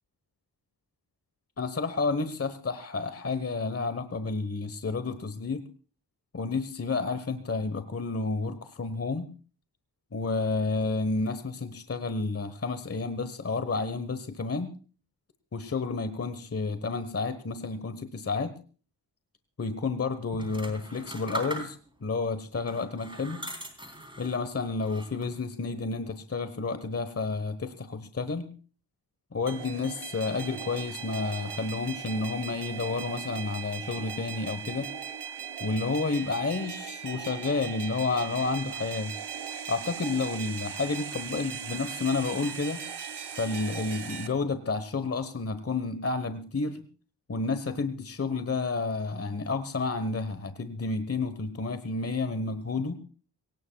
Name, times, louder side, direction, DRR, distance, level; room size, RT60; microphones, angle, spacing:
voice 1, 1.6-5.6 6.3-9.3 10.1-14.7 15.5-18.5 19.6-23.4 24.2-28.5 29.3-34.9 35.6-39.1 39.7-42.8 43.4-46.8 47.3-53.0, left 4 dB, 35° left, 11 dB, 1.3 m, -30 dB
sound 1, 20.3-22.1 22.6-24.4 24.8-25.4, right 1 dB, 10° right, 3.8 m, -40 dB
sound 2, 29.5-44.3, right 7 dB, 70° right, 1.6 m, -39 dB
22.5 x 19.0 x 2.4 m, 0.38 s
wide cardioid pair, 90°, 41 cm